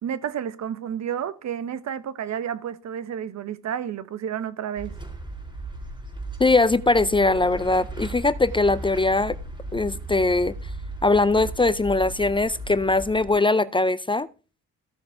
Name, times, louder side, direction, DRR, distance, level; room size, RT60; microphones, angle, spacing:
voice 1, 0.0-4.9, right 9 dB, 65° right, 1.2 m, -31 dB
sound 1, 4.8-13.3, right 1 dB, 15° right, 4.4 m, -36 dB
voice 2, 6.4-9.4 9.7-10.5 11.0-14.3, left 3 dB, 15° left, 0.5 m, -21 dB
14.5 x 6.9 x 4.9 m
cardioid pair, 90°, 30 cm